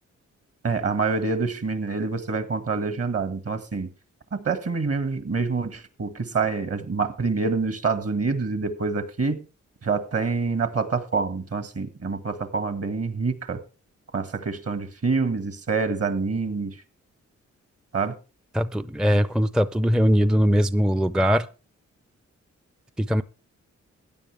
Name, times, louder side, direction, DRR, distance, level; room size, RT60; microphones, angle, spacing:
voice 1, 0.6-3.9 4.3-9.5 9.8-13.6 14.1-16.8 17.9-18.2, right 4 dB, 50° right, 1.8 m, -26 dB
voice 2, 18.5-21.5 23.0-23.2, equal, ahead, 0.5 m, -21 dB
16.0 x 9.9 x 3.4 m
cardioid pair, 65°, 30 cm